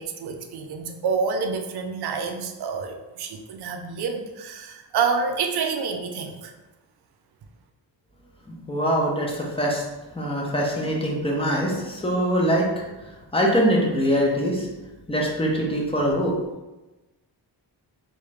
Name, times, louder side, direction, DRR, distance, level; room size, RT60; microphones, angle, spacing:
voice 1, 0.0-6.5, right 5 dB, 60° right, 4 dB, 0.5 m, -28 dB
voice 2, 8.5-9.8 10.1-12.7 13.3-14.7 15.1-16.3, equal, 15° left, -3 dB, 0.6 m, -23 dB
3.4 x 2.7 x 3.2 m, 1.1 s
wide cardioid pair, 145°, 44 cm